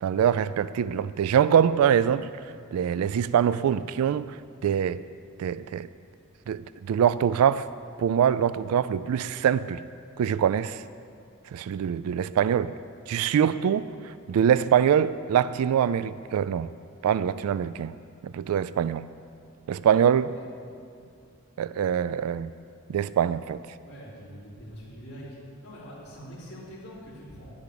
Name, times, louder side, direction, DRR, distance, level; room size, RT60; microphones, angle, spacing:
voice 1, 0.0-2.3 2.7-5.0 5.4-5.9 6.5-7.7 8.0-9.8 10.2-10.8 11.5-12.7 13.1-16.7 17.0-17.9 18.2-19.1 19.7-20.4 21.6-22.5 22.9-23.6, right 8 dB, 90° right, 16 dB, 0.3 m, -24 dB
voice 2, 23.8-25.4 25.6-27.5, equal, 50° left, -12 dB, 3.6 m, -44 dB
10.5 x 10.5 x 6.8 m, 2.4 s
head